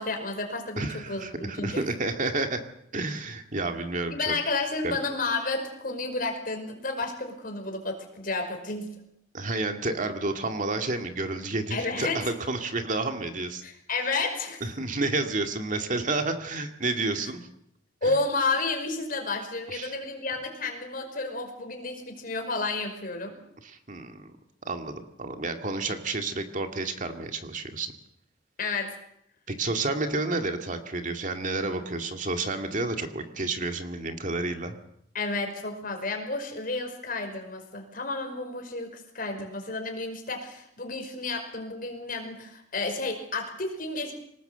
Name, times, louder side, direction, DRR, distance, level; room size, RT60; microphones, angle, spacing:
voice 1, 0.0-1.9 4.1-8.9 11.7-12.3 13.6-14.6 18.0-23.4 28.6-29.0 35.1-44.1, left 3 dB, 50° left, 4 dB, 5.4 m, -31 dB
voice 2, 0.8-2.6 2.9-4.4 4.8-5.0 9.3-13.6 14.6-17.5 18.1-18.2 19.7-19.9 23.6-24.3 24.6-27.9 29.5-34.8, right 2 dB, 45° right, 6 dB, 2.1 m, -30 dB
25.0 x 19.5 x 8.0 m, 0.73 s
head